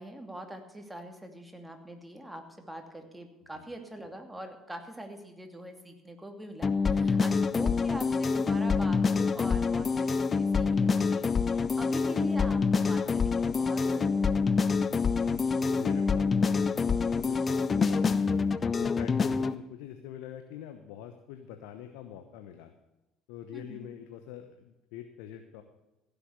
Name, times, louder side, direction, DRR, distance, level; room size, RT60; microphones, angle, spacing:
voice 1, 0.0-14.5 23.5-23.9, right 1 dB, 10° right, 5 dB, 2.6 m, -43 dB
sound 1, 6.6-19.5, left 5 dB, 35° left, 0.6 m, -26 dB
voice 2, 15.2-18.3 18.8-22.7 23.3-25.6, left 10 dB, 70° left, 7 dB, 1.0 m, -45 dB
15.5 x 7.0 x 8.0 m, 0.98 s
hypercardioid pair, 60°, 0 cm